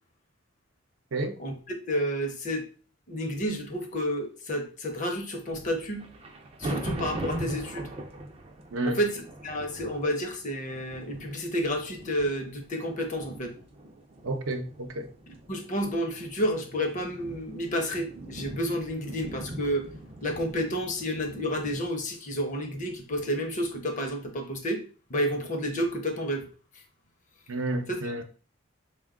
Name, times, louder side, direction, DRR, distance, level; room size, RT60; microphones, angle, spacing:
voice 1, 1.9-2.7 3.1-6.1 6.6-7.9 8.8-13.5 15.5-19.9 20.2-24.8 25.1-26.5 28.0-28.2, equal, 40° left, 0.6 m, -30 dB
sound 1, 5.5-21.8, right 1 dB, 30° right, 0.4 m, -41 dB
voice 2, 14.2-15.1 27.5-28.2, right 2 dB, 80° right, 0.6 m, -30 dB
4.3 x 2.2 x 3.6 m
head